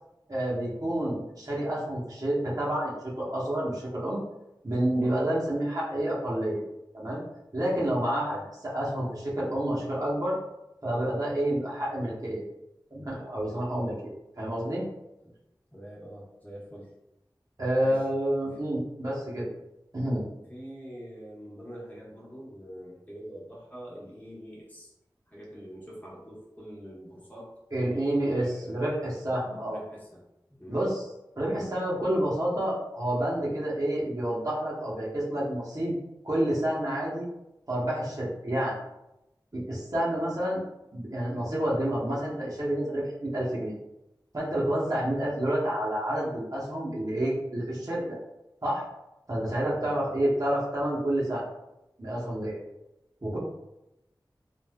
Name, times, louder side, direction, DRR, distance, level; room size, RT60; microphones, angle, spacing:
voice 1, 0.3-4.2 4.6-6.6 6.9-7.2 7.5-8.4 8.6-10.4 10.8-12.4 12.9-14.1 14.4-14.8 17.6-19.5 19.9-20.2 27.7-29.8 30.7-31.1 31.4-36.0 36.2-37.3 37.7-38.8 39.5-40.6 40.9-43.8 44.3-48.2 48.6-48.8 49.3-51.4 52.0-52.6 53.2-53.4, right 1 dB, 50° right, -6 dB, 0.9 m, -29 dB
voice 2, 15.7-16.9 17.8-18.0 20.5-24.9 25.3-27.5 28.3-28.8 29.2-30.2 30.5-30.8 31.5-31.7 49.9-50.1, equal, 20° left, -5 dB, 1.0 m, -44 dB
3.4 x 2.4 x 2.2 m, 0.90 s
wide cardioid pair, 45°, 8 cm